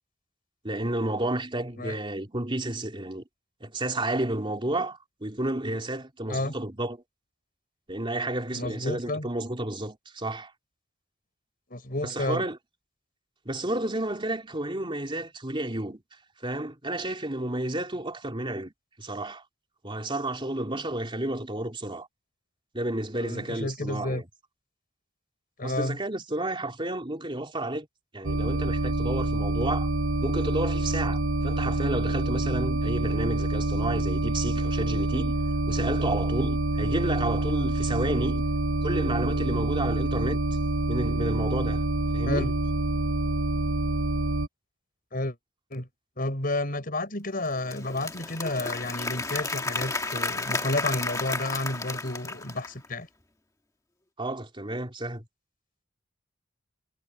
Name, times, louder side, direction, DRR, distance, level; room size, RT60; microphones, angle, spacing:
voice 1, 0.6-3.2 3.6-7.0 7.9-10.5 12.0-12.6 13.4-18.7 19.0-19.4 19.8-22.1 22.7-24.2 25.6-27.9 28.1-29.9 30.2-35.3 35.7-38.4 38.8-40.4 40.9-41.8 42.1-42.5 54.2-55.2, right 1 dB, 25° right, 3.4 m, -31 dB
voice 2, 8.5-9.3 11.7-12.4 23.2-24.2 25.6-26.0 42.3-42.5 45.1-45.4 45.7-45.9 46.2-53.1, left 2 dB, 45° left, 6.0 m, -31 dB
sound 1, 28.2-44.5, right 2 dB, 90° right, 1.1 m, -27 dB
Applause / Crowd, 47.5-52.9, left 3 dB, 15° left, 1.5 m, -32 dB
head